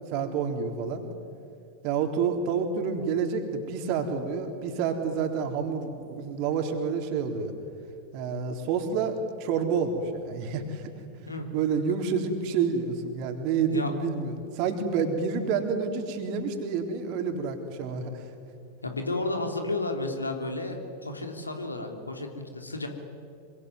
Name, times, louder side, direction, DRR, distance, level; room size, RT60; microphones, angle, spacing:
voice 1, 0.1-1.0 1.8-7.5 8.1-9.1 9.4-10.9 11.5-18.2, right 6 dB, 45° right, 5 dB, 3.8 m, -28 dB
voice 2, 18.8-22.9, left 2 dB, 80° left, 5 dB, 3.2 m, -32 dB
26.0 x 24.0 x 9.6 m, 2.5 s
figure-of-eight pair, 90°, 0 cm